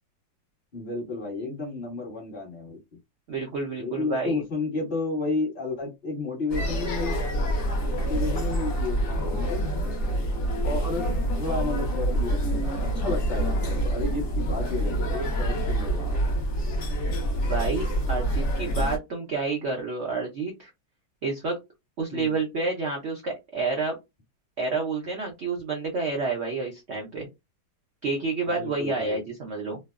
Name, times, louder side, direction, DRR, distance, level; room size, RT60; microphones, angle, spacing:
voice 1, 0.7-2.8 3.8-7.5 7.8-9.6 10.6-11.1 11.4-16.1 22.1-22.3 28.5-29.2, left 3 dB, 35° left, -2 dB, 1.1 m, -32 dB
voice 2, 3.3-4.4 17.4-20.7 21.2-21.6 22.0-23.9 24.6-27.3 28.0-29.8, right 3 dB, 85° right, 0 dB, 0.5 m, -29 dB
sound 1, 6.5-19.0, right 1 dB, 55° left, 0.9 m, -27 dB
3.0 x 2.0 x 2.3 m, 0.22 s
omnidirectional pair, 2.0 m